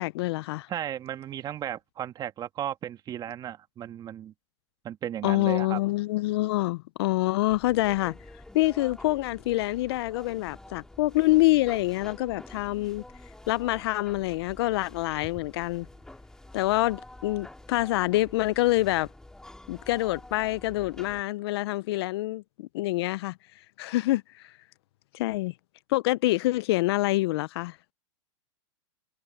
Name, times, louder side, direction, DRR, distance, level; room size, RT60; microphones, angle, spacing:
voice 1, 0.0-0.7 5.2-8.2 8.5-13.0 13.5-15.9 16.5-19.1 19.7-23.4 23.8-24.5 25.1-25.5 25.9-27.8, left 18 dB, 60° left, 0.5 m, -26 dB
voice 2, 0.7-4.3 4.8-5.8, right 10 dB, 25° right, 2.2 m, -35 dB
sound 1, 7.5-21.2, left 1 dB, 5° left, 2.2 m, -48 dB
hypercardioid pair, 130°, 15 cm